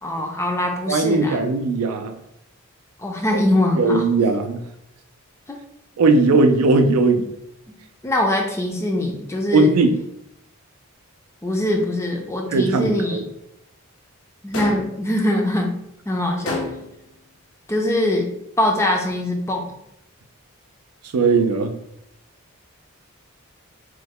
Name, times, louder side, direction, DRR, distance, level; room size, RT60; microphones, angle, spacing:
voice 1, 0.0-1.4 3.0-4.0 5.5-5.6 8.0-9.7 11.4-13.2 14.4-15.8 16.1-16.6 17.7-18.3 18.6-19.7, left 1 dB, 10° left, 1 dB, 0.4 m, -22 dB
voice 2, 0.9-2.1 3.3-3.4 3.8-4.6 6.0-7.3 9.5-10.0 12.5-13.2 21.1-21.8, right 3 dB, 90° right, 7 dB, 0.4 m, -18 dB
sound 1, 14.5-15.1 16.5-17.1, left 2 dB, 65° left, 0.6 m, -29 dB
3.1 x 2.1 x 3.5 m, 0.80 s
head